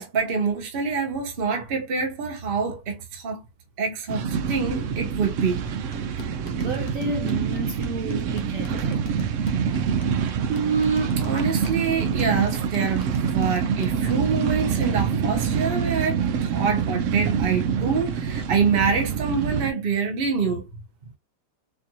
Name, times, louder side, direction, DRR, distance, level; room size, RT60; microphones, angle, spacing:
voice 1, 0.0-3.4 3.8-5.6 10.5-20.7, right 5 dB, 40° right, 0.9 m, -26 dB
sound 1, 4.1-19.7, right 7 dB, 90° right, 0.6 m, -26 dB
sound 2, 5.7-14.4, left 6 dB, 60° left, 0.9 m, -44 dB
voice 2, 6.6-9.2, right 3 dB, 55° right, 1.1 m, -32 dB
4.5 x 2.6 x 2.8 m
omnidirectional pair, 1.9 m